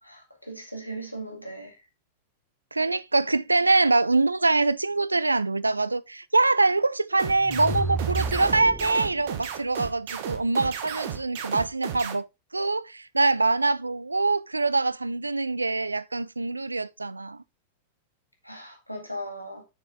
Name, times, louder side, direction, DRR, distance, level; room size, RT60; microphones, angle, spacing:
voice 1, 0.0-1.9 18.4-19.6, right 1 dB, 90° left, 1.9 m, -38 dB
voice 2, 2.7-12.3 12.5-17.4, right 3 dB, 80° right, 0.4 m, -24 dB
sound 1, 7.2-12.1, right 9 dB, 55° right, 1.4 m, -33 dB
sound 2, 7.4-9.3, right 2 dB, 5° right, 1.1 m, -32 dB
6.5 x 6.5 x 3.8 m
figure-of-eight pair, 90°, 0 cm